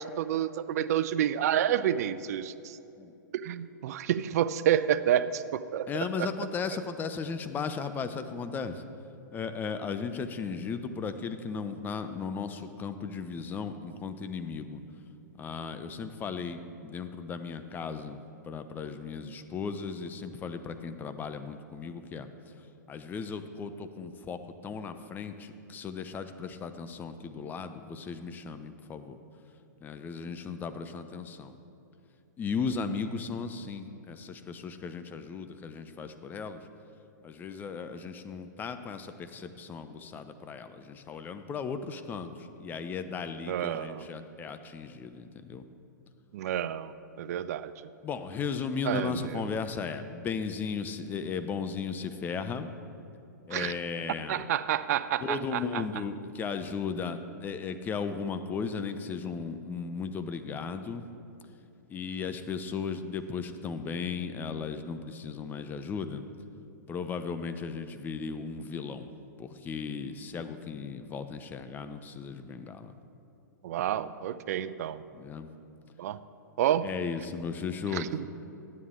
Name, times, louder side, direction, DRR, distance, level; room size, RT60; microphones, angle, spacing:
voice 1, 0.0-2.8 3.3-5.9 6.2-6.3 43.5-44.0 46.3-46.9 47.2-47.7 48.9-49.4 53.5-53.7 54.3-55.8 73.6-75.0 76.0-76.2 76.6-76.9 77.9-78.3, right 10 dB, 55° right, 14 dB, 0.4 m, -29 dB
voice 2, 5.9-8.8 9.3-14.8 15.4-22.3 22.9-29.2 29.8-31.6 32.4-36.6 37.2-45.6 48.0-52.7 53.5-54.4 55.2-61.0 61.9-66.2 66.9-69.1 69.4-72.9 75.1-75.5 76.8-78.1, left 5 dB, 20° left, 10 dB, 0.6 m, -36 dB
12.5 x 9.7 x 3.7 m, 2.7 s
hypercardioid pair, 120°, 10 cm